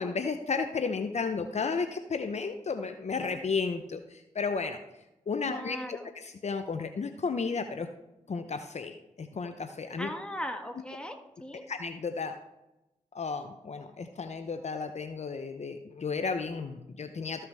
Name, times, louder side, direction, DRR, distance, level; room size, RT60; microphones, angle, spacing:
voice 1, 0.0-4.8 5.3-7.9 8.3-10.1 11.7-12.4 13.1-17.4, left 4 dB, 55° left, 7 dB, 0.7 m, -33 dB
voice 2, 5.4-6.1 10.0-11.6, equal, 5° left, 4 dB, 1.6 m, -38 dB
14.0 x 5.7 x 3.5 m, 0.93 s
supercardioid pair, 45°, 14 cm